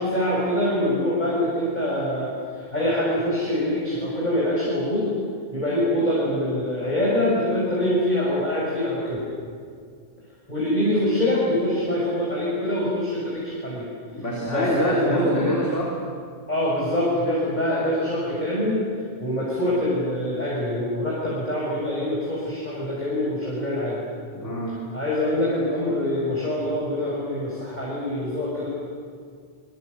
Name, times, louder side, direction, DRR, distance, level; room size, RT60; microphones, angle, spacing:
voice 1, 0.0-5.1 5.5-9.2 10.5-13.9 14.5-15.3 16.5-18.8 19.2-24.0 24.9-28.7, left 1 dB, 35° left, -6 dB, 6.6 m, -24 dB
voice 2, 14.2-16.0 24.3-24.8, equal, 70° left, -3 dB, 4.1 m, -25 dB
27.0 x 23.5 x 8.3 m, 2.1 s
omnidirectional pair, 1.3 m